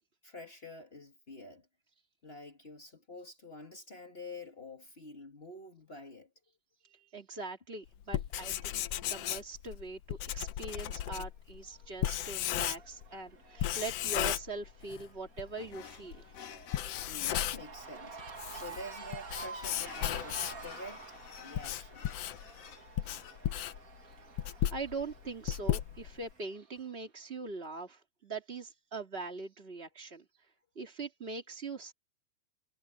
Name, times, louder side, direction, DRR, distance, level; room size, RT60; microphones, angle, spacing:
voice 1, 0.2-1.7 2.2-6.3 17.1-22.1, left 1 dB, 35° left, 0.9 m, -48 dB
voice 2, 6.8-16.3 23.0-23.1 24.0-30.2 30.7-31.9, right 3 dB, 25° right, 1.7 m, -42 dB
Writing, 8.0-13.1 13.6-15.1 15.4-15.5 16.1-16.2 16.6-17.8 18.2-20.7 21.3-26.3, left 12 dB, 70° left, 1.5 m, -35 dB
Cheering / Crowd, 11.7-26.9, right 5 dB, 40° right, 1.4 m, -50 dB
sound 1, 15.6-26.4, left 8 dB, 90° left, 4.1 m, -53 dB
omnidirectional pair, 3.8 m